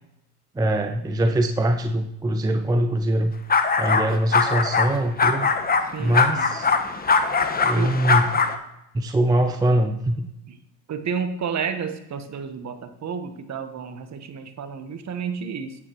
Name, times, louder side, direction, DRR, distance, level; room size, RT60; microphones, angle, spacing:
voice 1, 0.5-3.3 3.8-5.5 6.0-6.7 7.6-8.3 8.9-10.3, right 1 dB, 10° right, 6 dB, 0.6 m, -22 dB
sound 1, 3.5-4.1 4.3-4.9 5.2-8.6, left 4 dB, 20° left, 1.0 m, -21 dB
voice 2, 5.9-6.5 7.7-7.9 10.9-15.8, right 6 dB, 35° right, 8 dB, 1.2 m, -31 dB
9.6 x 9.0 x 3.1 m, 0.82 s
hypercardioid pair, 80°, 46 cm